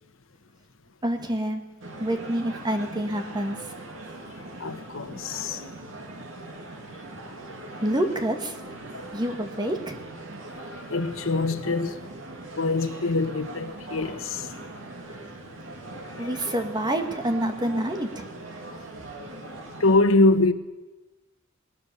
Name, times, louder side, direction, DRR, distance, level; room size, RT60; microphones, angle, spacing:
voice 1, 1.0-1.6 2.0-3.6 7.8-8.6 9.1-10.0 16.2-18.3, right 1 dB, 20° right, 2.0 m, -27 dB
sound 1, 1.8-20.0, right 2 dB, 75° right, 3.0 m, -41 dB
voice 2, 4.6-5.6 10.6-12.0 12.6-14.5 16.2-16.3 19.8-20.5, left 2 dB, 90° left, 1.2 m, -24 dB
20.0 x 19.5 x 7.0 m
head